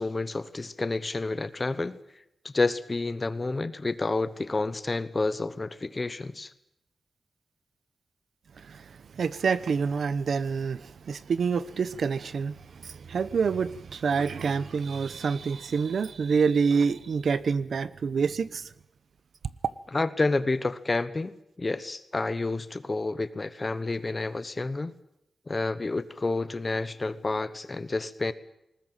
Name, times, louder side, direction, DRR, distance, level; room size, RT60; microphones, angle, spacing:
voice 1, 0.0-2.0 2.4-6.5 19.9-21.3 21.6-24.9 25.5-28.3, left 3 dB, 25° left, 1.1 m, -29 dB
voice 2, 9.2-18.7, right 5 dB, 65° right, 0.9 m, -27 dB
20.0 x 20.0 x 9.0 m
wide cardioid pair, 175°, 0 cm